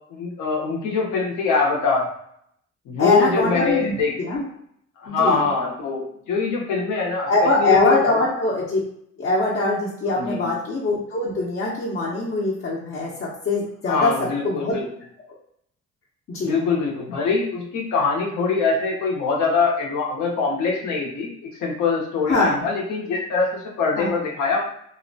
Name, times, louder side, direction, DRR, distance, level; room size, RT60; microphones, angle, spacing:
voice 1, 0.1-2.1 2.9-4.1 5.0-7.3 7.6-8.2 10.1-10.5 13.9-14.9 16.4-24.6, left 4 dB, 80° left, -1 dB, 0.8 m, -23 dB
voice 2, 3.0-4.5 5.1-5.5 7.3-8.8 9.2-14.8 16.3-16.5 22.3-22.6 23.9-24.1, left 2 dB, 40° left, -5 dB, 0.7 m, -22 dB
2.7 x 2.1 x 2.6 m, 0.70 s
cardioid pair, 90°, 30 cm